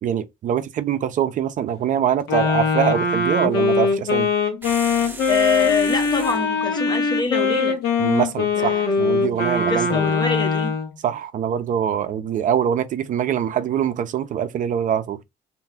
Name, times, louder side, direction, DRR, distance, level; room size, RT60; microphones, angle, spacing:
voice 1, 0.0-4.3 8.0-10.1 11.0-15.2, right 9 dB, 50° right, 0.4 m, -23 dB
Wind instrument woodwind instrument, 2.3-10.9, left 4 dB, 85° left, 1.0 m, -21 dB
sound 1, 4.6-6.5, right 2 dB, 10° right, 0.6 m, -36 dB
voice 2, 5.3-7.8 8.5-10.7, left 5 dB, 25° left, 0.6 m, -25 dB
2.6 x 2.2 x 3.4 m
cardioid pair, 110°, 17 cm